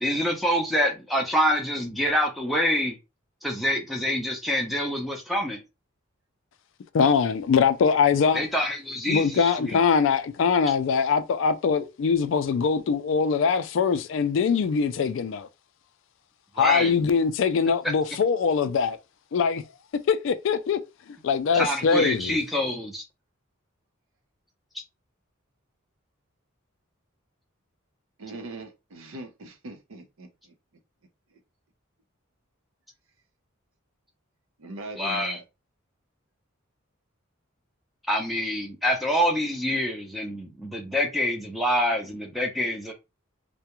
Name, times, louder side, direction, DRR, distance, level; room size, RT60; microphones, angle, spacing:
voice 1, 0.0-3.0 3.4-5.6 8.3-9.8 16.6-17.0 21.5-23.0 35.0-35.4 38.1-42.9, equal, ahead, 0.5 m, -26 dB
voice 2, 6.9-8.4 9.1-15.5 16.6-19.0 19.3-19.6 20.1-20.8 21.2-22.4, left 6 dB, 60° left, 0.3 m, -22 dB
voice 3, 28.2-30.6 34.6-35.4, right 2 dB, 75° right, 0.6 m, -41 dB
2.3 x 2.1 x 2.9 m
head